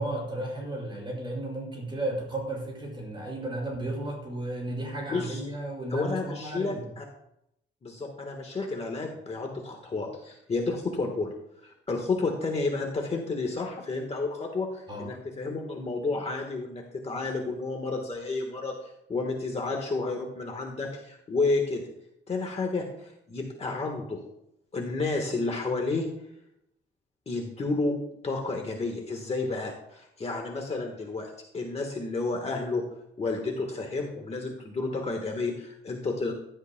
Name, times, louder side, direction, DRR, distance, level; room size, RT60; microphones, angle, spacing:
voice 1, 0.0-6.9 14.9-15.1, right 1 dB, 25° right, -2 dB, 5.0 m, -34 dB
voice 2, 5.1-5.4 5.9-7.0 7.8-11.3 11.6-18.7 19.1-21.8 22.3-24.2 24.7-26.1 27.3-27.9 28.2-32.8 33.2-36.3, left 3 dB, 30° left, 2 dB, 1.3 m, -31 dB
15.5 x 11.5 x 2.2 m, 0.78 s
wide cardioid pair, 180°, 20 cm